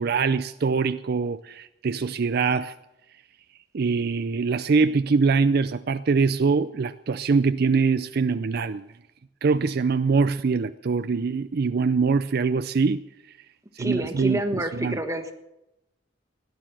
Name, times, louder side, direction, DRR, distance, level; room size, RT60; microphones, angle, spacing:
voice 1, 0.0-2.7 3.7-8.8 9.4-13.0 13.8-15.0, right 4 dB, 55° right, 0.5 m, -23 dB
voice 2, 13.8-15.3, right 1 dB, 15° right, 1.3 m, -28 dB
17.0 x 11.0 x 7.5 m
head